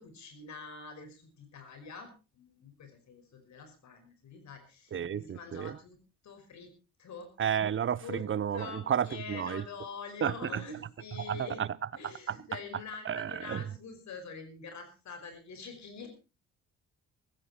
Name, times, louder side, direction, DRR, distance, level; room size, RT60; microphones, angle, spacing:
voice 1, 0.0-6.0 6.2-6.7 7.0-7.3 8.0-8.3 8.5-11.6 11.9-16.1, left 5 dB, 65° left, 5.6 m, -45 dB
voice 2, 4.9-5.8 7.4-9.6 10.2-10.6 11.3-11.7 12.0-12.4 13.1-13.6, right 8 dB, 40° right, 0.8 m, -32 dB
16.0 x 14.5 x 4.4 m
cardioid pair, 90°, 30 cm